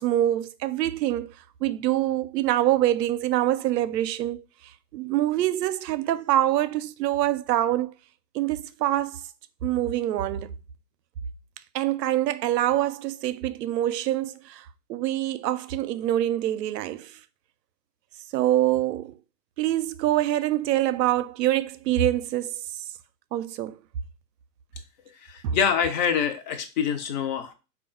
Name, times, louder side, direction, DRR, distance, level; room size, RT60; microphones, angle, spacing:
voice 1, 0.0-1.3 1.6-4.4 4.9-7.9 8.3-9.2 9.6-10.5 11.7-17.2 18.3-19.1 19.6-22.8 23.3-23.8 25.4-25.6, right 13 dB, 75° right, 0.5 m, -25 dB
voice 2, 25.2-27.5, left 7 dB, 30° left, 0.4 m, -25 dB
3.5 x 2.3 x 3.7 m
hypercardioid pair, 120°, 49 cm